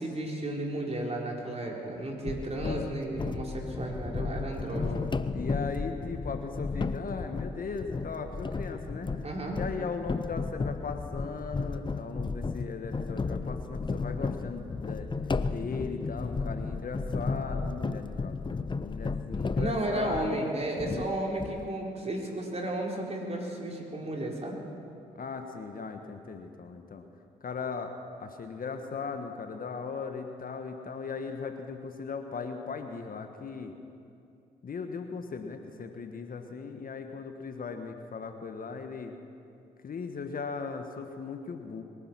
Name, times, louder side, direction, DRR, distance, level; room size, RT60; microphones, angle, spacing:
voice 1, 0.0-5.1 9.2-9.6 19.6-24.6, right 1 dB, 35° right, -1 dB, 4.0 m, -33 dB
sound 1, 2.2-20.4 20.8-21.7, left 4 dB, 25° left, 0.7 m, -34 dB
voice 2, 2.6-3.0 4.7-9.1 9.6-15.1 15.4-18.4 18.8-20.4 25.1-27.0 27.4-33.7 34.6-39.2 39.8-41.8, left 5 dB, 50° left, 6 dB, 1.3 m, -38 dB
22.5 x 10.0 x 6.1 m, 2.6 s
hypercardioid pair, 50°, 19 cm